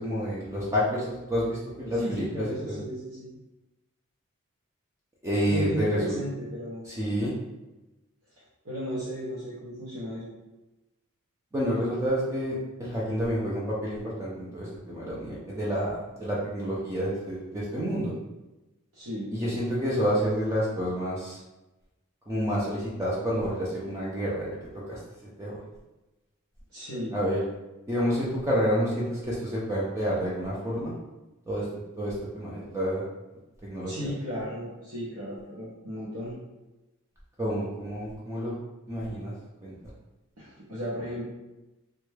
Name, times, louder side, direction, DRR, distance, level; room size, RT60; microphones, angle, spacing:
voice 1, 0.0-2.8 5.2-6.2 7.0-7.3 11.5-18.1 19.3-21.4 22.3-24.5 24.9-25.0 25.4-25.6 27.1-27.4 27.9-30.9 31.5-31.6 32.0-33.0 33.6-34.1 37.4-38.5 38.9-39.3 39.6-39.7, equal, 15° right, -6 dB, 0.5 m, -29 dB
voice 2, 1.9-3.3 5.4-6.8 8.6-10.3 18.9-19.3 26.7-27.2 33.8-36.3 40.4-41.3, equal, 70° right, -8 dB, 0.7 m, -35 dB
3.5 x 2.2 x 3.2 m, 1.0 s
head